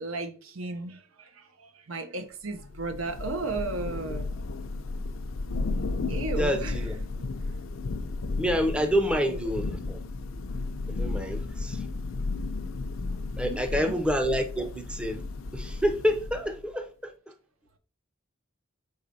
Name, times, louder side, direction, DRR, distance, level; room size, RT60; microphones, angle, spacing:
voice 1, 0.0-4.3 6.1-6.7 9.1-9.4 13.4-14.0, right 3 dB, 85° right, 0.8 m, -35 dB
Thunder / Rain, 2.6-16.7, left 3 dB, 80° left, 0.5 m, -33 dB
voice 2, 6.4-7.0 8.4-10.0 10.9-11.8 13.4-15.2 15.5-17.1, equal, 5° right, 0.5 m, -28 dB
4.8 x 4.0 x 2.6 m
head